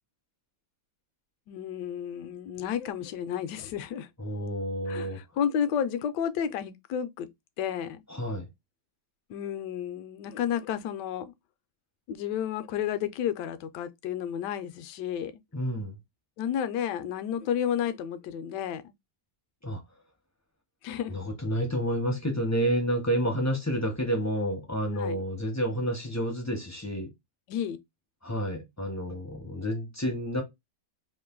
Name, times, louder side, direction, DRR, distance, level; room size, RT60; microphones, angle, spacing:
voice 1, 1.5-4.1 4.9-7.3 7.6-8.0 9.3-11.3 12.1-15.4 16.4-18.9 20.8-21.2 24.9-25.2 27.5-27.8, left 9 dB, 75° left, 1.1 m, -31 dB
voice 2, 4.2-5.2 8.1-8.5 15.5-16.0 19.6-19.8 21.0-27.1 28.2-30.4, equal, 20° left, 0.4 m, -29 dB
3.2 x 2.5 x 3.6 m
omnidirectional pair, 2.0 m